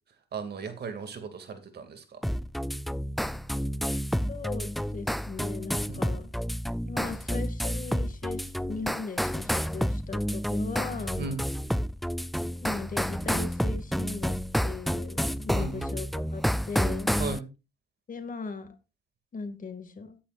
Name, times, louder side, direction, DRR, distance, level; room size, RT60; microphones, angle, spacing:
voice 1, 0.3-2.2 5.9-6.1 11.2-11.4 15.5-15.9 17.2-17.5, right 4 dB, 55° right, 8 dB, 2.4 m, -36 dB
sound 1, 2.2-17.4, equal, ahead, 0.4 m, -30 dB
voice 2, 4.3-6.3 6.8-11.3 12.6-16.1 16.3-17.2 18.1-18.7 19.3-20.2, left 4 dB, 40° left, 9 dB, 2.1 m, -38 dB
14.0 x 10.0 x 2.5 m, 0.28 s
cardioid pair, 90°, 20 cm